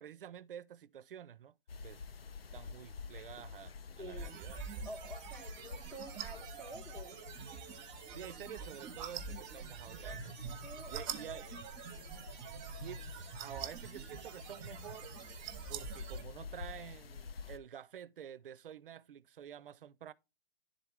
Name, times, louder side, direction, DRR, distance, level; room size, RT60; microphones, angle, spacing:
voice 1, 0.0-1.6 1.8-2.0 2.5-4.7 8.1-10.3 10.9-11.7 12.8-15.1 15.7-20.1, right 9 dB, 65° right, 0.5 m, -49 dB
sound 1, 1.7-17.6, left 5 dB, 90° left, 0.5 m, -49 dB
voice 2, 4.0-4.3 4.8-7.4 10.0-10.4 10.6-11.2, right 1 dB, 5° left, 0.4 m, -49 dB
sound 2, 4.2-16.2, right 7 dB, 25° right, 0.8 m, -46 dB
10.0 x 3.8 x 3.5 m
figure-of-eight pair, 120°, 29 cm